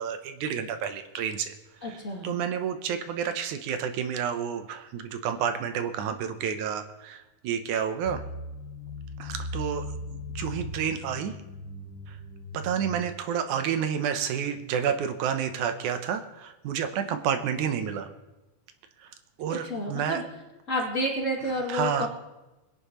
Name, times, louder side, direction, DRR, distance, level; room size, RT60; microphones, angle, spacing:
voice 1, 0.0-1.5 1.8-8.2 9.2-11.4 12.1-12.2 12.5-18.1 19.0-19.1 19.4-20.2 21.7-22.1, right 8 dB, 75° right, 9 dB, 2.1 m, -30 dB
voice 2, 1.8-2.3 19.5-20.3 20.7-22.1, equal, 25° left, -3 dB, 2.6 m, -30 dB
sound 1, 8.1-13.1, left 1 dB, 80° left, 3.2 m, -38 dB
22.0 x 10.5 x 3.0 m, 1.0 s
omnidirectional pair, 3.9 m